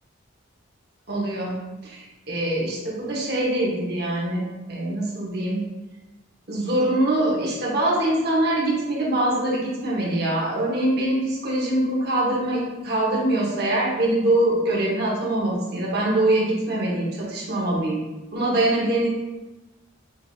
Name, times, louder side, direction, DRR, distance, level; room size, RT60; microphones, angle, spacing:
voice 1, 1.1-1.6 1.8-5.6 6.5-18.0 18.3-19.1, right 1 dB, 55° right, -4 dB, 1.3 m, -23 dB
6.7 x 2.5 x 2.8 m, 1.1 s
head